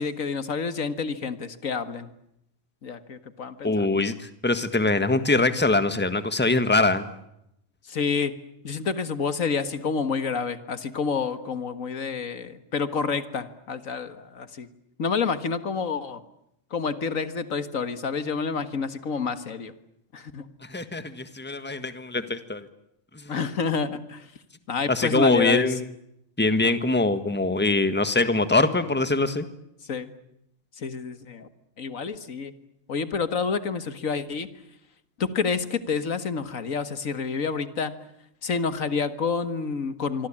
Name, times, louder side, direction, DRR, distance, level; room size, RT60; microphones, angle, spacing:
voice 1, 0.0-2.1 2.8-3.9 7.9-8.3 8.6-14.7 15.0-16.2 16.7-19.7 20.1-20.5 23.3-24.3 24.7-25.7 26.5-26.8 29.9-30.1 30.8-31.5 31.8-32.5 32.9-34.5 35.2-37.9 38.4-40.3, left 5 dB, 80° left, 12 dB, 2.0 m, -28 dB
voice 2, 3.6-7.1 20.7-22.7 23.2-23.3 24.9-25.8 26.4-29.4, left 2 dB, 10° left, 11 dB, 1.6 m, -23 dB
25.5 x 25.0 x 8.8 m, 0.80 s
omnidirectional pair, 1.4 m